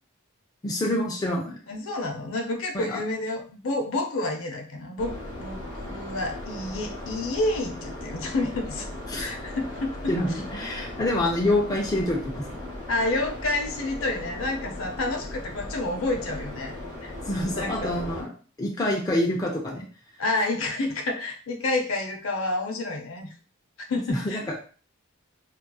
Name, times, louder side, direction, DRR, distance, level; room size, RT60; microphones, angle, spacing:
voice 1, 0.6-1.6 2.7-3.0 9.1-9.3 10.1-12.4 17.3-19.9 24.1-24.6, left 1 dB, 15° left, -1 dB, 0.3 m, -27 dB
voice 2, 1.7-5.1 5.4-8.9 9.2-10.1 12.9-16.8 17.0-17.1 17.6-17.9 20.2-23.3 23.8-24.4, left 2 dB, 70° left, 3 dB, 0.5 m, -29 dB
sound 1, 5.0-18.2, left 1 dB, 35° left, 1.1 m, -37 dB
2.7 x 2.3 x 2.2 m, 0.39 s
head